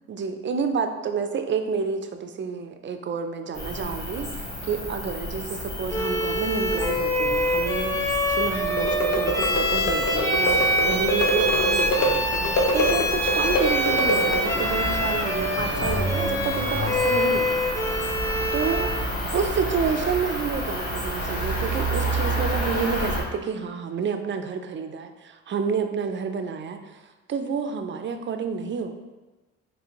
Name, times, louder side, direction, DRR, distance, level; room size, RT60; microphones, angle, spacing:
voice 1, 0.1-12.3 12.7-17.7 18.5-29.0, right 5 dB, 40° right, 7 dB, 0.4 m, -29 dB
Cricket, 3.5-23.2, equal, 35° left, 1.5 m, -30 dB
Bowed string instrument, 5.9-19.1, equal, 10° left, 0.6 m, -26 dB
sound 1, 8.7-14.8, equal, 65° left, 0.8 m, -25 dB
4.2 x 3.2 x 2.9 m, 1.2 s
cardioid pair, 90°, 30 cm